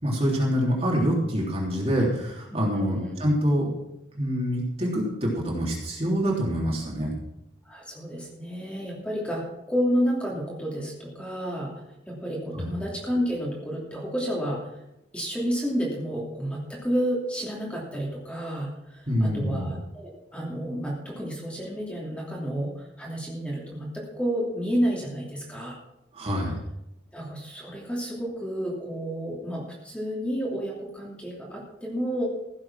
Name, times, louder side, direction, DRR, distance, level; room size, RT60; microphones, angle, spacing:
voice 1, 0.0-3.7 4.1-7.1 12.5-12.7 19.1-19.7 26.1-26.6, equal, 30° right, -2 dB, 3.4 m, -26 dB
voice 2, 2.5-3.2 7.6-11.7 12.1-14.8 15.1-25.8 27.1-32.3, equal, 5° left, -4 dB, 2.9 m, -30 dB
15.5 x 7.6 x 6.0 m, 0.87 s
head